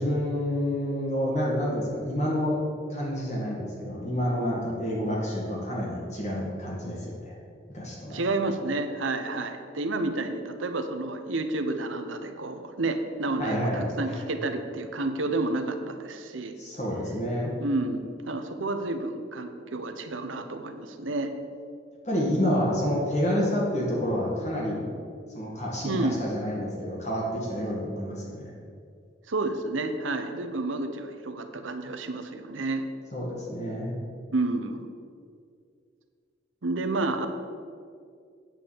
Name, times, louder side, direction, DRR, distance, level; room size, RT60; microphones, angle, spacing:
voice 1, 0.0-2.6 2.9-7.3 7.7-8.2 13.4-14.2 16.6-17.5 22.0-24.8 25.3-28.5 33.1-33.9, equal, 35° left, -3 dB, 1.9 m, -29 dB
voice 2, 8.1-16.6 17.6-21.3 25.8-26.2 29.3-32.9 34.3-34.9 36.6-37.3, right 2 dB, 90° right, 7 dB, 0.9 m, -30 dB
9.0 x 5.5 x 7.3 m, 2.2 s
head